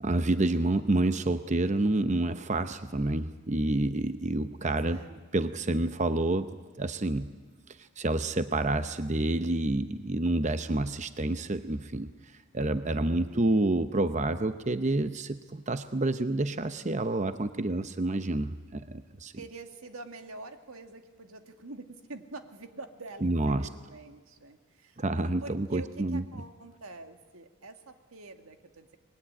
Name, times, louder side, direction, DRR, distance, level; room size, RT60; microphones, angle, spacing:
voice 1, 0.0-5.0 5.3-6.5 6.8-7.3 7.8-12.1 12.5-19.3 23.2-23.7 25.0-26.2, right 2 dB, 35° right, 10 dB, 0.8 m, -28 dB
voice 2, 4.6-5.2 13.0-13.7 19.3-25.0 25.4-29.0, right 3 dB, 90° right, 6 dB, 2.1 m, -46 dB
25.5 x 21.0 x 10.0 m, 1.4 s
head